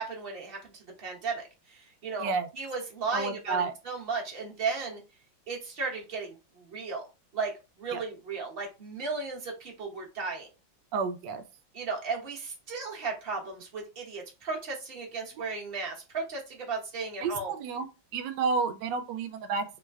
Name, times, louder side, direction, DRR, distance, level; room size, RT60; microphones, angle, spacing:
voice 1, 0.0-5.0 5.5-7.0 7.3-10.5 11.7-17.5, right 4 dB, 40° right, 0.9 m, -35 dB
voice 2, 3.1-3.7 7.9-8.0 10.9-11.4 17.2-17.9 18.1-19.6, right 4 dB, 75° right, 1.2 m, -30 dB
3.2 x 2.1 x 3.4 m
omnidirectional pair, 2.1 m